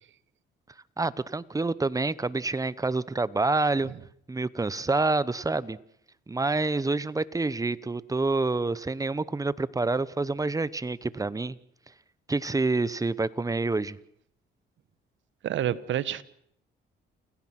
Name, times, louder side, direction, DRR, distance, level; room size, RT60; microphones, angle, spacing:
voice 1, 1.0-3.9 4.3-5.8 6.3-11.6 12.3-14.0, right 3 dB, 15° right, 18 dB, 1.0 m, -27 dB
voice 2, 15.4-16.2, right 11 dB, 70° right, 16 dB, 1.2 m, -28 dB
29.0 x 17.0 x 6.0 m, 0.69 s
cardioid pair, 90°, 20 cm